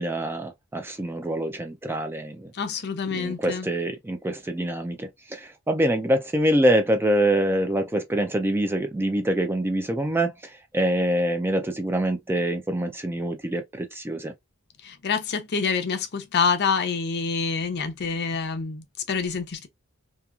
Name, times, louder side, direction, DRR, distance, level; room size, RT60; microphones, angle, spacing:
voice 1, 0.0-2.5 3.1-14.3, right 1 dB, 10° right, 0.3 m, -25 dB
voice 2, 2.5-3.7 14.8-19.7, left 5 dB, 50° left, 0.6 m, -27 dB
2.9 x 2.2 x 2.3 m
head